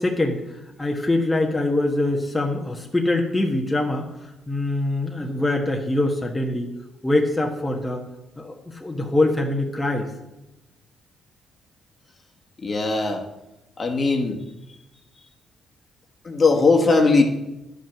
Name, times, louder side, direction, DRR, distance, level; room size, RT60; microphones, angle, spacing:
voice 1, 0.0-6.7 7.0-8.0 8.4-10.1, left 2 dB, 15° left, 0 dB, 1.4 m, -24 dB
voice 2, 12.6-13.2 13.8-14.4 16.2-17.2, left 3 dB, 35° left, 2 dB, 1.7 m, -19 dB
11.0 x 5.4 x 7.4 m, 0.95 s
cardioid pair, 90°, 0 cm